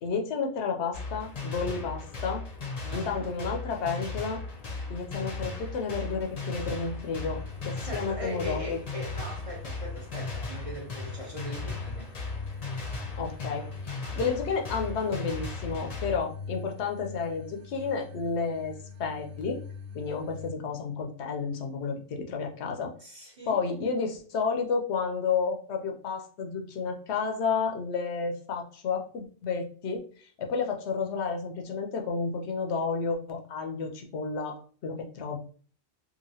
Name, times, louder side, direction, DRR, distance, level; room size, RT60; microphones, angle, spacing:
voice 1, 0.0-2.4 2.9-4.4 4.9-8.8 13.2-18.7 19.0-19.6 19.9-22.9 23.5-30.0 30.4-35.4, left 5 dB, 75° left, 0.9 m, -31 dB
sound 1, 0.9-16.2, left 3 dB, 40° left, 0.6 m, -37 dB
voice 2, 2.8-3.3 7.8-12.1 23.0-23.6, equal, 35° right, 0.7 m, -40 dB
sound 2, 4.4-20.5, left 5 dB, 90° right, 0.9 m, -44 dB
2.9 x 2.5 x 2.7 m
omnidirectional pair, 1.2 m